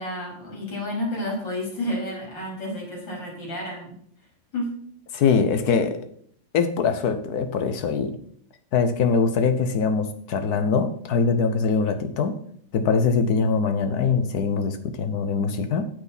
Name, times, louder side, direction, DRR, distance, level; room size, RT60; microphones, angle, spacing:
voice 1, 0.0-4.0 4.5-4.8, left 1 dB, 80° left, -3 dB, 4.6 m, -30 dB
voice 2, 5.1-6.0 6.5-8.2 8.7-12.4 12.7-15.9, left 5 dB, 60° left, 8 dB, 1.4 m, -22 dB
9.1 x 8.3 x 4.1 m, 0.63 s
omnidirectional pair, 2.0 m